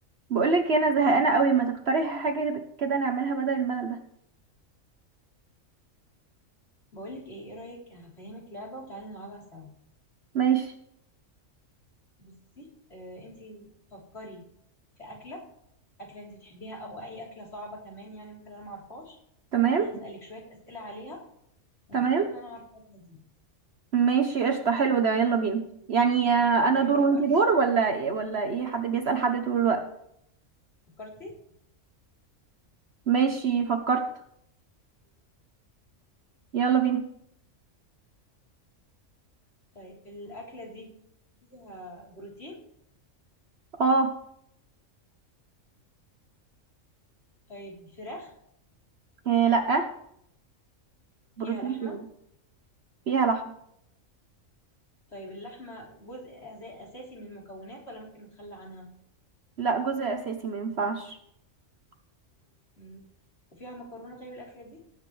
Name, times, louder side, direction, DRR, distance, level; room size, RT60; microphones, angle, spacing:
voice 1, 0.3-4.0 10.3-10.7 19.5-19.9 21.9-22.3 23.9-29.8 33.1-34.0 36.5-37.0 43.8-44.1 49.3-49.9 51.4-52.0 53.1-53.4 59.6-61.2, right 5 dB, 55° right, 5 dB, 1.2 m, -24 dB
voice 2, 6.9-9.7 12.2-14.4 15.0-15.4 16.0-19.2 19.7-21.2 21.9-23.2 26.4-26.5 26.7-27.4 31.0-31.3 39.7-40.9 41.5-42.7 47.5-48.3 51.4-52.0 55.1-58.9 62.8-63.1 63.5-64.8, equal, 55° left, -2 dB, 4.1 m, -43 dB
19.0 x 7.9 x 3.3 m, 0.71 s
omnidirectional pair, 1.3 m